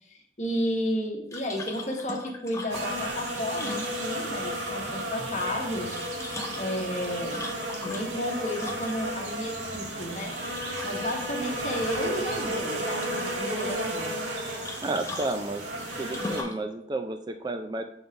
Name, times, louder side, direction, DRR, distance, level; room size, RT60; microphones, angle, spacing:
voice 1, 0.1-6.0 6.6-7.5 7.8-10.3 10.8-14.1, equal, 40° left, 1 dB, 1.2 m, -32 dB
sound 1, 1.3-4.4 5.7-9.2 10.5-11.2 11.5-12.2 12.5-13.4 14.6-16.7, left 3 dB, 15° left, 0.7 m, -40 dB
sound 2, 2.7-16.4, right 1 dB, 85° right, 1.6 m, -33 dB
voice 2, 14.8-15.7 16.0-17.8, right 2 dB, 25° right, 7 dB, 0.3 m, -31 dB
5.5 x 4.0 x 5.8 m, 0.76 s
head